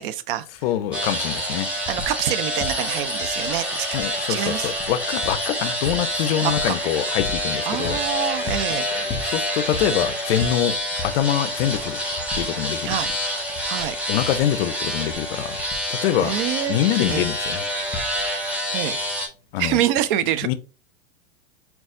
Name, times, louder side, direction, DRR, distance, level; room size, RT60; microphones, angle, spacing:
voice 1, 0.0-0.5 1.9-4.0 4.3-4.7 6.4-6.5 7.7-8.9 12.8-13.1 13.7-14.0 16.2-16.8 17.1-17.2 18.7-19.0 19.6-20.5, right 12 dB, 50° right, 0.5 m, -26 dB
sound 1, 0.5-0.6 0.9-2.3 2.6-18.6 19.6-19.7, left 3 dB, 25° left, 1.1 m, -38 dB
voice 2, 0.6-1.7 3.9-8.0 8.9-10.8 11.0-12.0 12.3-13.1 14.1-15.6 15.9-16.4 16.7-17.7 19.5-19.8 20.4-20.5, left 11 dB, 60° left, 0.5 m, -24 dB
sound 2, 0.9-19.3, equal, 5° right, 1.2 m, -27 dB
4.0 x 2.3 x 3.7 m
hypercardioid pair, 110°, 34 cm